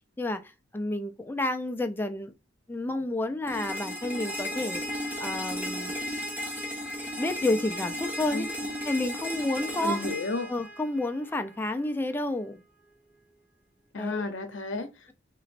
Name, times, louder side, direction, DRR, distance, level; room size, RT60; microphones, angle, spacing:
voice 1, 0.7-2.3 2.7-4.8 5.2-5.9 7.2-8.5 8.9-10.0 10.5-12.6 14.0-14.2, left 2 dB, 10° left, 0.4 m, -30 dB
sound 1, 3.5-11.4, left 1 dB, 10° right, 0.9 m, -35 dB
voice 2, 9.8-10.5 13.9-15.1, left 3 dB, 70° left, 0.8 m, -32 dB
4.1 x 3.1 x 2.5 m
head